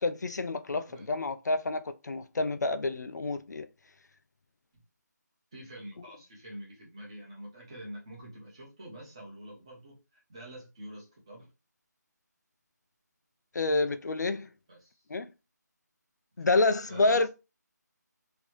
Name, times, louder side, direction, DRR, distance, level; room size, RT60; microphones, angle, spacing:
voice 1, 0.0-3.7 13.5-14.5 15.1-15.3 16.4-17.3, left 3 dB, 70° left, 0.4 m, -28 dB
voice 2, 0.9-1.2 5.5-11.5 14.7-15.0 16.9-17.3, right 1 dB, 15° right, 0.9 m, -46 dB
3.1 x 2.7 x 3.0 m
figure-of-eight pair, 175°, 10 cm